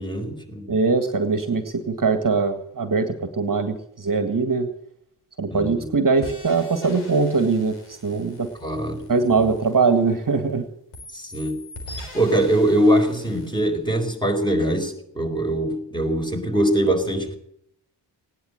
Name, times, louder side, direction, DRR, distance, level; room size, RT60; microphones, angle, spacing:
voice 1, 0.0-0.7 5.5-5.9 8.6-9.0 9.4-9.5 11.1-11.6 12.0-17.4, right 1 dB, 10° left, 4.3 m, -22 dB
voice 2, 0.7-4.7 5.4-8.5 9.1-10.7, right 4 dB, 40° right, 1.7 m, -22 dB
sound 1, 6.2-10.5 10.9-13.6, left 1 dB, 85° left, 4.1 m, -42 dB
16.5 x 10.5 x 7.7 m
supercardioid pair, 45°, 50 cm